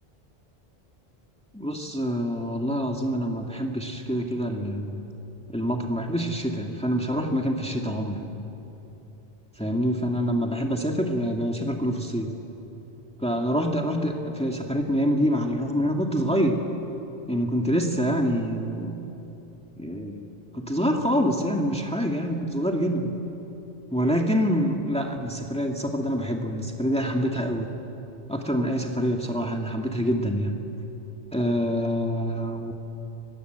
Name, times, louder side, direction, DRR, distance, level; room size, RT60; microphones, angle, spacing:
voice 1, 1.5-5.0 5.5-8.3 9.6-12.3 13.2-16.6 17.3-19.0 19.8-20.3 20.5-23.1 23.9-27.7 28.3-30.6 31.3-32.7, equal, 5° left, 1 dB, 2.0 m, -26 dB
30.0 x 24.0 x 8.1 m, 3.0 s
omnidirectional pair, 1.0 m